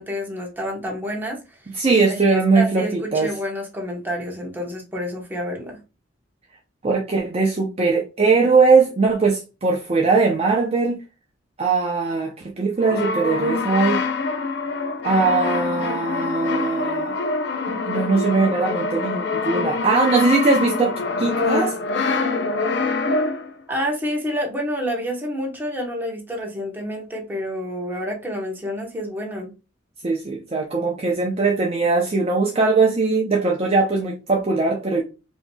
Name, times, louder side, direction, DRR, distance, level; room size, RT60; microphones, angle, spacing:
voice 1, 0.0-1.6 1.9-5.8 23.7-29.5, equal, 10° right, 1.0 m, -29 dB
voice 2, 1.8-3.3 6.8-11.0 11.6-14.0 15.0-17.2 17.7-21.7 30.0-35.0, right 4 dB, 35° right, 0.5 m, -20 dB
Brass instrument, 12.8-23.6, left 4 dB, 65° left, 0.4 m, -25 dB
4.6 x 2.7 x 2.2 m
head